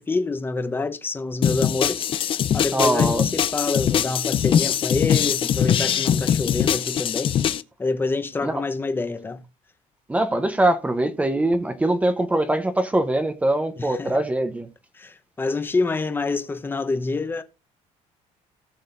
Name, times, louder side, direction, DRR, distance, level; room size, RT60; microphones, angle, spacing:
voice 1, 0.0-7.3 7.8-9.4 13.8-14.2 14.9-17.4, left 3 dB, 15° left, 1.0 m, -27 dB
sound 1, 1.4-7.6, left 9 dB, 45° left, 0.6 m, -22 dB
voice 2, 2.7-3.3 8.4-8.6 10.1-14.7, right 1 dB, 10° right, 0.9 m, -22 dB
18.5 x 6.4 x 2.6 m
cardioid pair, 135°, 13 cm